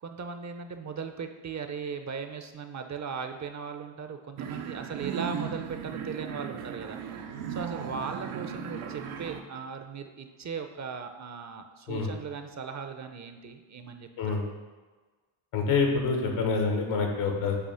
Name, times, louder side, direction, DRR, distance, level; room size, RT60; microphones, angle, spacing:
voice 1, 0.0-7.0 7.5-14.4, right 5 dB, 35° right, 7 dB, 0.6 m, -38 dB
sound 1, 4.4-9.4, right 7 dB, 80° right, 0.8 m, -37 dB
voice 2, 15.5-17.6, left 4 dB, 80° left, 2 dB, 1.5 m, -26 dB
8.2 x 2.9 x 5.6 m, 1.4 s
cardioid pair, 90°, 49 cm